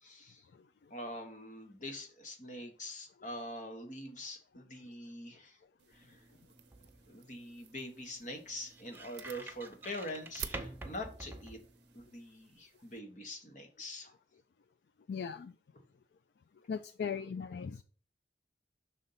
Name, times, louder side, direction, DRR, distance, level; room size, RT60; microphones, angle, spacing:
voice 1, 0.0-0.4 0.9-5.6 5.9-6.2 7.1-11.6 11.9-14.2, left 1 dB, 45° left, 4 dB, 1.3 m, -44 dB
sound 1, 5.8-13.0, right 8 dB, 80° right, 0.6 m, -52 dB
sound 2, 5.9-12.2, right 2 dB, 10° right, 0.6 m, -49 dB
voice 2, 15.1-15.5 16.7-17.8, left 6 dB, 70° left, 12 dB, 0.3 m, -38 dB
6.3 x 3.9 x 5.6 m, 0.40 s
head